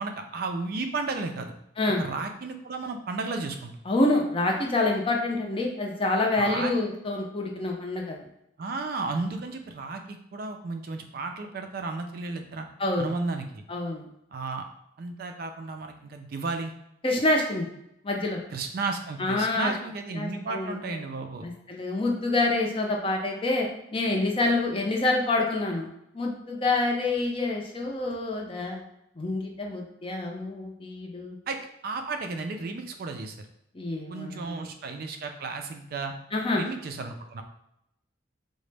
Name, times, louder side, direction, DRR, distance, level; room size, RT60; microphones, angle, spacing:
voice 1, 0.0-1.5 2.0-3.8 6.3-6.7 8.6-12.7 13.0-13.6 14.3-14.7 15.0-16.7 18.5-21.5 31.5-33.5 34.1-36.1 36.6-37.4, right 3 dB, 50° right, 5 dB, 0.3 m, -33 dB
voice 2, 3.9-8.2 12.8-13.1 13.7-14.1 17.0-17.7 18.0-18.4 19.2-19.7 20.1-21.0 21.4-25.9 26.1-28.8 29.2-31.4 33.7-34.7 36.3-36.7, left 2 dB, 25° left, 1 dB, 0.5 m, -27 dB
3.8 x 2.1 x 3.2 m, 0.80 s
head